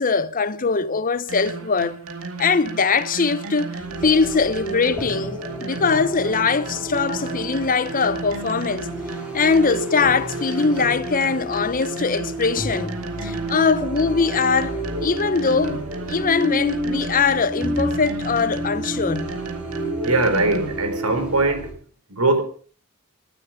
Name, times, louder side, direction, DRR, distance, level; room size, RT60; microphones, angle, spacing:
voice 1, 0.0-2.0 2.4-3.7 4.0-8.9 9.3-13.0 13.2-15.8 16.1-19.3, left 4 dB, 40° left, 0.9 m, -21 dB
sound 1, 1.3-20.9, right 4 dB, 70° right, 2.4 m, -35 dB
sound 2, 3.8-21.7, equal, 5° right, 4.9 m, -30 dB
voice 2, 20.0-21.7 22.1-22.4, right 2 dB, 85° right, 3.7 m, -21 dB
20.0 x 12.0 x 5.2 m
head